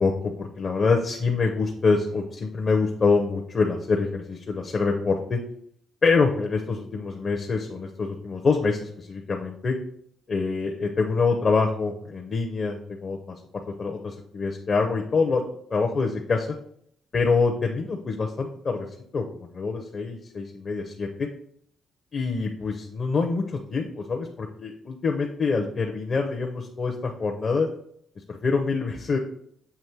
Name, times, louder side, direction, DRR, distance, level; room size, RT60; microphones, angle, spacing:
voice 1, 0.0-5.4 6.0-9.7 10.3-15.4 15.7-16.5 17.1-18.9 19.1-21.3 22.1-27.7 28.3-29.2, left 4 dB, 45° left, 2 dB, 0.7 m, -25 dB
7.0 x 3.1 x 4.5 m, 0.68 s
cardioid pair, 90°, 0 cm